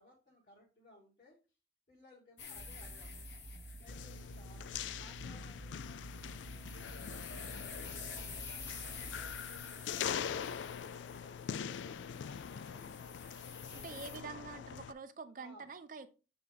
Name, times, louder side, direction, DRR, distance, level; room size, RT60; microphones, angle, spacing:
voice 1, 0.0-1.4 1.9-4.7 5.0-7.8 8.1-11.4 11.9-13.2 13.8-14.5 15.4-15.7, left 1 dB, 45° left, 1.7 m, -61 dB
sound 1, 2.4-14.2, left 5 dB, 70° left, 1.4 m, -50 dB
sound 2, 2.6-9.4, right 2 dB, 15° right, 1.0 m, -50 dB
sound 3, 3.9-14.9, left 8 dB, 90° left, 0.3 m, -43 dB
voice 2, 13.7-16.1, right 5 dB, 50° right, 0.4 m, -46 dB
7.3 x 3.4 x 3.8 m
head